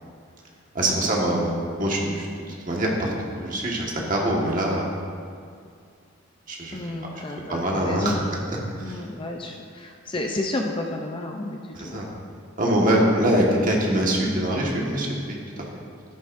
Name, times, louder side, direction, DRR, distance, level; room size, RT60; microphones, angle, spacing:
voice 1, 0.7-1.5 1.8-4.8 6.5-6.8 7.1-7.2 7.5-8.2 8.9-9.0 11.7-12.1 12.6-15.6, right 1 dB, 40° right, -2 dB, 1.5 m, -24 dB
voice 2, 6.7-8.3 8.8-12.0 12.8-13.0, left 2 dB, 25° left, 2 dB, 0.5 m, -31 dB
12.5 x 11.0 x 2.6 m, 2.3 s
head